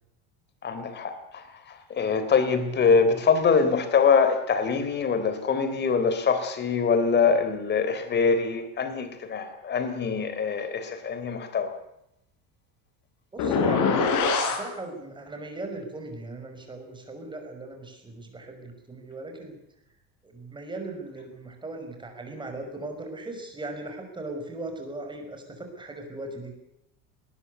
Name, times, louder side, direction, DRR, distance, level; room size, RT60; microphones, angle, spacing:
voice 1, 0.6-11.7, left 5 dB, 25° left, 10 dB, 3.6 m, -24 dB
voice 2, 13.3-14.1 14.3-19.6 20.2-26.5, right 2 dB, 10° right, 4 dB, 5.9 m, -38 dB
sound 1, 13.4-14.6, left 4 dB, 50° left, 5.3 m, -23 dB
21.0 x 20.0 x 8.3 m, 0.81 s
cardioid pair, 160°, 40 cm